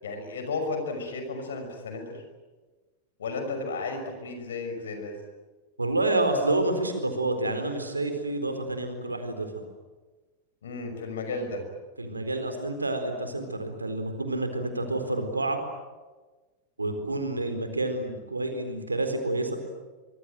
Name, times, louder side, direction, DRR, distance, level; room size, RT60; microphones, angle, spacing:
voice 1, 0.0-2.2 3.2-5.2 10.6-11.6, left 3 dB, 65° left, 6 dB, 5.9 m, -33 dB
voice 2, 5.8-9.5 12.0-15.6 16.8-19.6, right 2 dB, 80° right, 7 dB, 4.2 m, -28 dB
25.0 x 24.0 x 9.2 m, 1.3 s
figure-of-eight pair, 90°, 0 cm